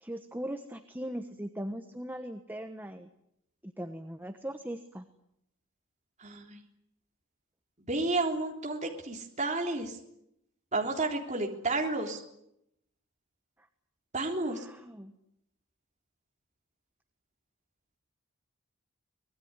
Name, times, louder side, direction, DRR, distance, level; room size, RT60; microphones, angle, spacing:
voice 1, 0.0-3.1 3.6-5.0 14.5-15.1, right 1 dB, 10° right, 7 dB, 1.1 m, -39 dB
voice 2, 6.2-6.6 7.9-10.0 10.7-12.2 14.1-14.6, right 2 dB, 30° right, 1 dB, 3.5 m, -31 dB
25.0 x 20.0 x 9.7 m, 0.80 s
head